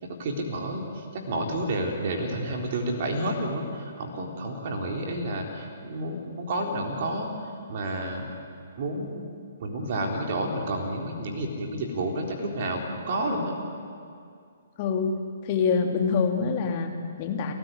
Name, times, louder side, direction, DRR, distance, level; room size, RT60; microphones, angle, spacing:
voice 1, 0.0-8.3 8.8-9.2 9.6-13.5, right 1 dB, 40° right, 1 dB, 3.9 m, -30 dB
voice 2, 14.8-15.2 15.4-17.5, left 5 dB, 35° left, 4 dB, 2.7 m, -25 dB
28.5 x 14.5 x 9.6 m, 2.3 s
figure-of-eight pair, 125°, 0 cm